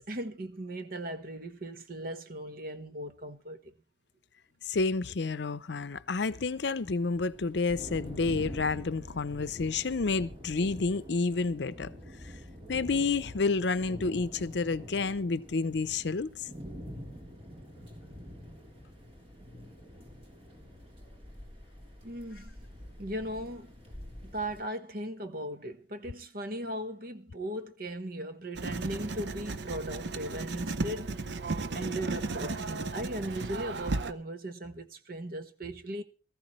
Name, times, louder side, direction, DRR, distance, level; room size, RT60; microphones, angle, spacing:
voice 1, 0.0-3.7 22.0-22.5 23.0-23.7 24.2-31.5 31.7-36.0, right 1 dB, 50° right, 1.1 m, -38 dB
voice 2, 4.7-11.9 12.2-12.3 12.7-16.3, left 4 dB, 65° left, 0.6 m, -30 dB
sound 1, 6.3-24.6, equal, 30° right, 3.4 m, -46 dB
Writing, 28.6-34.1, right 3 dB, 65° right, 0.7 m, -35 dB
19.5 x 14.0 x 3.1 m
head